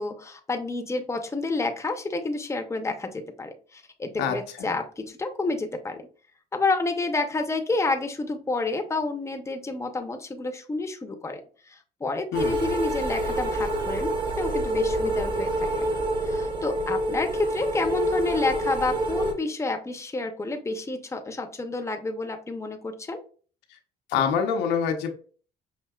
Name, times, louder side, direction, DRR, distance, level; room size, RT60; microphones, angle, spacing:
voice 1, 0.0-6.0 6.5-11.4 11.7-15.9 16.2-23.2, left 3 dB, 15° left, 5 dB, 0.7 m, -29 dB
voice 2, 4.2-4.7 12.3-12.6 24.1-25.1, left 7 dB, 90° left, 4 dB, 0.8 m, -25 dB
sound 1, 12.3-19.3, right 1 dB, 30° right, 1.0 m, -27 dB
5.6 x 2.7 x 2.3 m, 0.41 s
cardioid pair, 110°, 17 cm